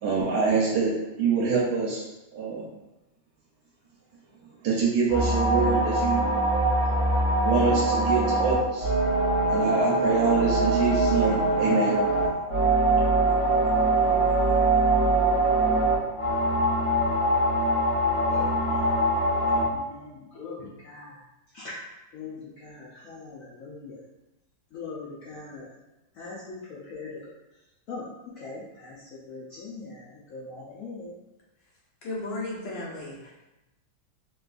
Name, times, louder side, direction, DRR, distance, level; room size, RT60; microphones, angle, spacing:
voice 1, 0.0-2.0 2.3-2.7 4.6-6.3 7.4-8.9 9.5-12.0 13.4-13.6 14.5-14.8, right 5 dB, 70° right, -4 dB, 1.0 m, -25 dB
sound 1, 5.1-19.6, right 2 dB, 55° left, 1.3 m, -23 dB
voice 2, 18.3-19.0 19.5-21.1 21.5-21.7 22.1-24.0 24.7-25.7 26.2-27.2 27.9-28.1 28.4-29.0 29.3-31.1, left 4 dB, 90° left, -7 dB, 0.7 m, -41 dB
voice 3, 32.0-33.4, left 2 dB, 70° left, -5 dB, 1.4 m, -35 dB
3.8 x 2.4 x 2.4 m, 0.99 s
omnidirectional pair, 2.1 m